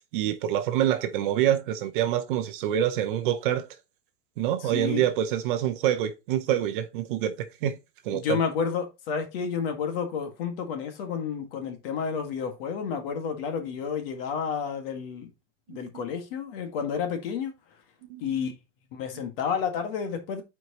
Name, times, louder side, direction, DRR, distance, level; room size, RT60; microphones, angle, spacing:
voice 1, 0.1-3.7 4.4-7.8 8.0-8.4 15.7-15.9 18.1-18.5, right 11 dB, 45° right, 0.7 m, -26 dB
voice 2, 4.6-5.0 8.1-15.3 15.7-17.5 18.2-18.5 18.9-20.4, left 6 dB, 50° left, 1.7 m, -30 dB
9.0 x 4.7 x 2.9 m
supercardioid pair, 160°, 36 cm